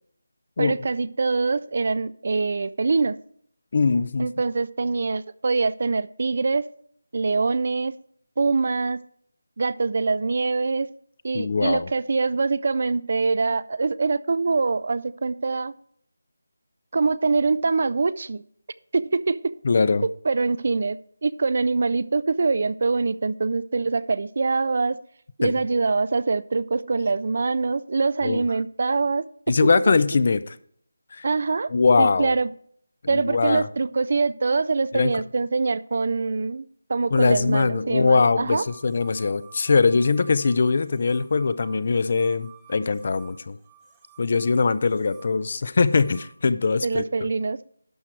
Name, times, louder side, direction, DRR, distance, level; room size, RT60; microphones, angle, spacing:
voice 1, 0.6-3.2 4.2-6.7 7.1-8.0 8.4-9.0 9.6-10.9 11.2-15.7 16.9-18.4 18.9-19.5 20.2-25.0 25.4-29.2 29.6-30.0 31.2-31.7 32.0-32.5 33.1-36.6 36.9-38.6 46.8-47.6, right 4 dB, 40° right, 17 dB, 0.3 m, -24 dB
voice 2, 3.7-4.3 11.3-11.8 19.6-20.0 25.4-25.5 28.2-28.4 29.5-30.6 31.1-31.2 31.7-32.4 33.1-33.7 34.9-35.1 37.1-43.6 44.2-47.0, left 4 dB, 35° left, 16 dB, 0.4 m, -21 dB
sound 1, 38.5-46.4, right 9 dB, 10° right, 0.8 m, -52 dB
11.5 x 6.4 x 4.5 m, 0.64 s
figure-of-eight pair, 175°, 0 cm